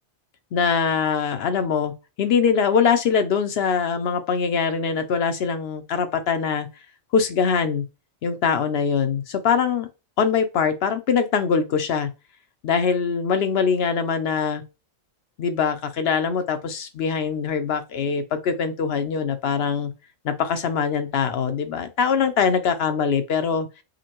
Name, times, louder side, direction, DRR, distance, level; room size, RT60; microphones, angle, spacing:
voice 1, 0.5-6.7 7.1-7.8 8.2-9.9 10.2-12.1 12.6-14.6 15.4-19.9 20.2-23.7, left 6 dB, 65° left, 0.8 m, -23 dB
5.0 x 2.2 x 2.9 m
omnidirectional pair, 1.1 m